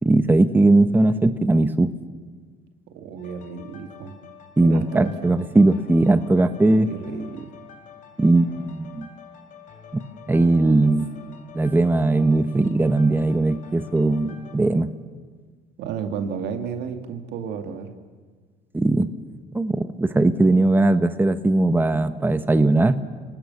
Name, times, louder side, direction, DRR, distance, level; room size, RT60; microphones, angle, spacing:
voice 1, 0.0-1.9 4.6-6.9 8.2-9.1 9.9-10.0 10.3-11.1 11.5-14.9 18.7-19.1 19.5-23.0, right 2 dB, 10° right, 11 dB, 1.0 m, -19 dB
voice 2, 2.9-4.2 4.6-5.3 6.8-7.5 15.8-17.9, right 6 dB, 85° right, 6 dB, 2.4 m, -32 dB
sound 1, 3.2-14.6, left 7 dB, 50° left, 3.6 m, -47 dB
30.0 x 19.5 x 7.1 m, 1.5 s
cardioid pair, 110°, 17 cm